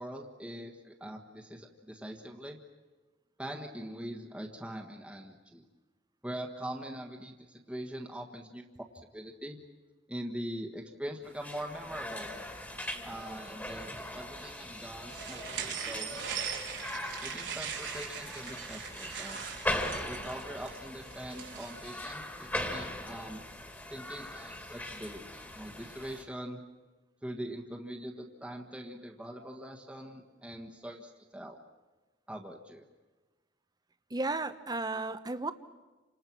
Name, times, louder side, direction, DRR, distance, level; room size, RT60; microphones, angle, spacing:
voice 1, 0.0-2.6 3.4-5.7 6.2-8.6 9.1-9.6 10.1-12.4 13.0-16.1 17.2-19.4 20.1-23.4 23.9-26.6 27.2-31.6 32.3-32.9, right 1 dB, 5° right, 1 dB, 1.5 m, -42 dB
sound 1, 11.3-26.2, left 1 dB, 10° left, 2.2 m, -40 dB
sound 2, 15.1-21.9, right 7 dB, 90° right, 3.9 m, -40 dB
voice 2, 34.1-35.5, right 2 dB, 20° right, 11 dB, 1.0 m, -33 dB
30.0 x 26.5 x 6.2 m, 1.2 s
head